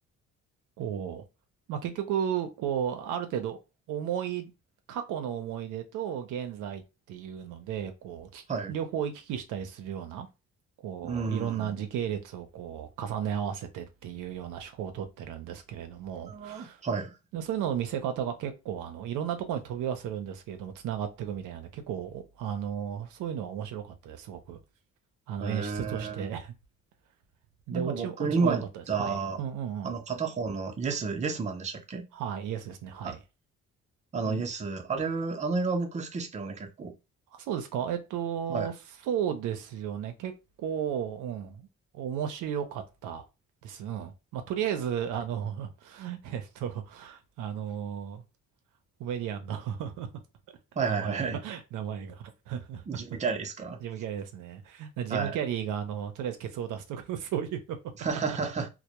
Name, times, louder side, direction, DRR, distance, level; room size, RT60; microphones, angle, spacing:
voice 1, 0.8-1.2 1.7-3.6 3.9-4.5 4.9-10.3 10.8-16.8 17.3-24.6 25.3-26.5 27.7-28.6 29.0-29.9 32.1-33.2 34.2-34.4 37.3-38.7 39.1-40.3 40.6-41.7 41.9-43.2 43.6-48.2 49.0-50.1 50.9-52.8 53.8-57.6, right 9 dB, 85° right, 0.5 m, -34 dB
voice 2, 11.0-11.8 16.2-17.2 25.4-26.3 27.7-29.4 29.8-32.1 33.0-33.1 34.1-36.9 38.5-38.7 50.8-51.4 52.9-53.8 55.1-55.4 58.0-58.7, right 4 dB, 25° right, 0.5 m, -31 dB
2.1 x 2.1 x 2.8 m
cardioid pair, 90°, 30 cm